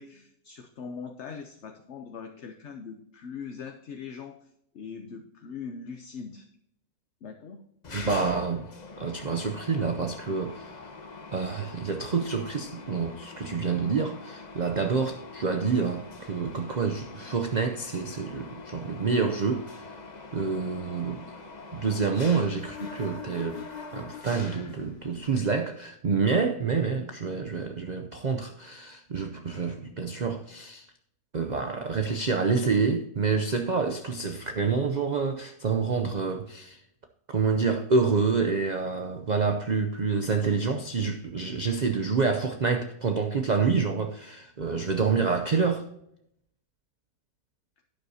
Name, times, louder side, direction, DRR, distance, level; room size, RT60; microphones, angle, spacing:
voice 1, 0.0-4.5 4.7-6.4 7.2-7.6, left 6 dB, 55° left, 1.0 m, -41 dB
Mechanisms, 7.8-25.3, left 4 dB, 35° left, 0.9 m, -43 dB
voice 2, 7.9-8.7 9.0-10.7 11.3-19.8 20.3-21.3 21.7-23.6 23.9-30.8 31.3-36.8 37.3-45.8, right 5 dB, 50° right, 0.5 m, -27 dB
11.5 x 9.5 x 2.8 m
omnidirectional pair, 1.6 m